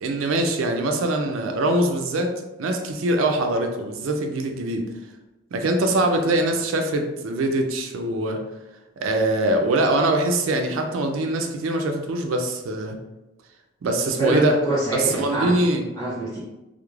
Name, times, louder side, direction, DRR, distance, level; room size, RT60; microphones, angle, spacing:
voice 1, 0.0-4.9 5.5-8.4 9.0-13.0 13.8-14.6 14.9-15.8, right 1 dB, 90° right, 4 dB, 0.4 m, -23 dB
voice 2, 14.2-15.6 15.9-16.4, right 1 dB, 15° left, -8 dB, 0.7 m, -25 dB
2.3 x 2.0 x 3.0 m, 1.0 s
head